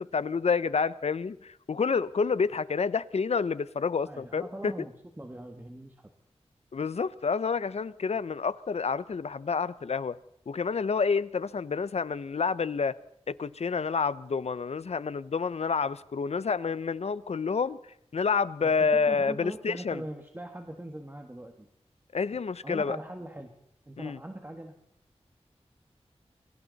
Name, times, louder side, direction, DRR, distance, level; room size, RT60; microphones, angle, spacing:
voice 1, 0.0-4.7 6.7-10.2 10.5-13.0 13.3-17.8 18.1-20.0 22.1-23.0 24.0-24.2, left 5 dB, 70° left, 0.7 m, -29 dB
voice 2, 4.0-6.1 18.6-21.7 22.6-23.5 23.8-24.7, right 1 dB, 20° right, 1.7 m, -41 dB
29.5 x 23.0 x 4.1 m
wide cardioid pair, 95°, 11 cm